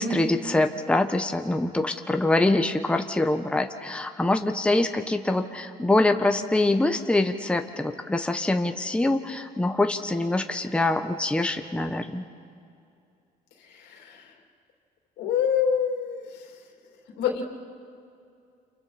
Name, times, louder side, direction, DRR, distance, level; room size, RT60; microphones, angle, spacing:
voice 1, 0.0-12.2, left 2 dB, 5° left, 6 dB, 1.1 m, -24 dB
voice 2, 13.6-14.4 15.2-16.6 17.2-17.4, left 7 dB, 85° left, 2 dB, 3.1 m, -27 dB
30.0 x 28.0 x 4.3 m, 2.5 s
cardioid pair, 110°, 17 cm